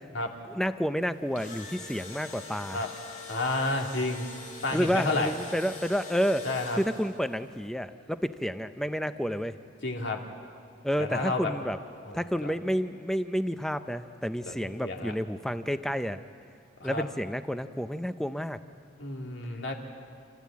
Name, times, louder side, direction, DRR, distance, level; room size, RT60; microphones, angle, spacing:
voice 1, 0.4-2.8 4.7-6.5 6.8-9.5 10.8-11.8 12.1-16.2 16.8-18.6, equal, ahead, 10 dB, 0.6 m, -30 dB
Engine / Drill, 1.1-7.3, left 3 dB, 40° left, 2.2 m, -44 dB
voice 2, 3.3-4.3 4.6-5.3 6.4-6.8 9.8-10.2 11.0-11.5 12.0-12.5 14.5-15.1 16.8-17.0 19.0-19.7, left 2 dB, 65° left, 2 dB, 2.4 m, -31 dB
28.5 x 14.5 x 8.5 m, 2.3 s
head